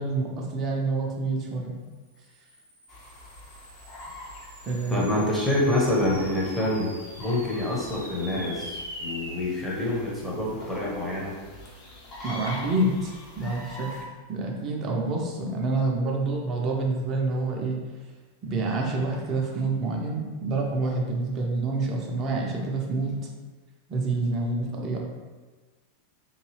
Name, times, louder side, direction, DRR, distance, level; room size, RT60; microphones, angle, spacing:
voice 1, 0.0-1.7 4.6-5.1 12.2-17.8 18.4-23.2 23.9-25.0, right 2 dB, 30° right, -1 dB, 0.7 m, -27 dB
sound 1, 2.3-12.9, equal, 90° right, 0.5 m, -44 dB
sound 2, 2.9-14.0, left 1 dB, 30° left, 1.0 m, -44 dB
voice 2, 4.9-6.9 7.2-11.3, left 1 dB, 5° left, -5 dB, 1.0 m, -26 dB
3.9 x 2.6 x 3.2 m, 1.3 s
figure-of-eight pair, 90°, 0 cm